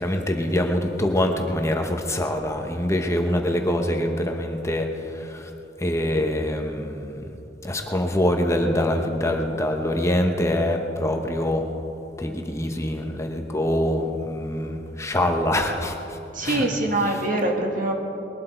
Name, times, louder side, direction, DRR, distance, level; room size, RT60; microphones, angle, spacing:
voice 1, 0.0-5.5 5.8-7.2 7.6-11.7 12.2-16.7, left 1 dB, 15° left, 3 dB, 1.0 m, -24 dB
voice 2, 16.3-17.9, right 1 dB, 50° right, 2 dB, 1.9 m, -24 dB
21.0 x 12.0 x 4.5 m, 2.9 s
head